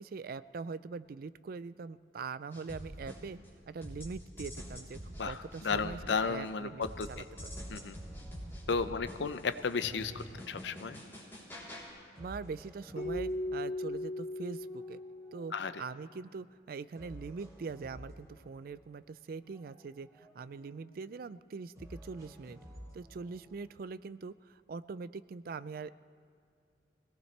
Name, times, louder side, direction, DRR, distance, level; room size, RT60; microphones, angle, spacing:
voice 1, 0.0-3.4 3.7-6.8 7.1-7.2 12.2-15.0 15.3-22.6 22.9-25.9, right 4 dB, 50° right, 15 dB, 0.3 m, -42 dB
sound 1, 2.5-3.5 3.8-6.5 6.8-11.9, equal, 15° left, 3.5 m, -46 dB
voice 2, 5.2-7.1 7.7-7.9 8.7-11.0 15.5-15.8, left 5 dB, 75° left, 12 dB, 0.6 m, -34 dB
sound 2, 7.3-9.4 9.8-11.6 12.1-14.1 14.6-16.3 16.9-19.1 19.4-21.1 21.7-23.7, equal, 20° right, 3.5 m, -54 dB
Keyboard (musical), 13.0-15.8, left 1 dB, 35° left, 2.0 m, -38 dB
23.5 x 18.0 x 3.3 m, 2.2 s
head